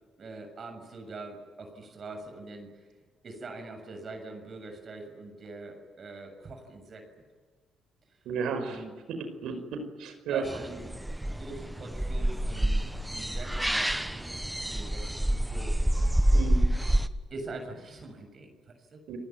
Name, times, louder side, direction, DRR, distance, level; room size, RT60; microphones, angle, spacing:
voice 1, 0.2-2.9 3.2-7.0 8.6-8.9 9.5-9.6 10.3-11.0 11.3-15.7 17.3-19.0, right 3 dB, 50° right, 4 dB, 6.8 m, -43 dB
voice 2, 8.3-8.8 9.4-10.4 16.3-16.7 19.1-19.2, right 6 dB, 85° right, 7 dB, 5.2 m, -33 dB
sound 1, 10.4-17.1, right 1 dB, 5° right, 1.3 m, -27 dB
30.0 x 19.5 x 9.4 m, 1.5 s
cardioid pair, 90°, 0 cm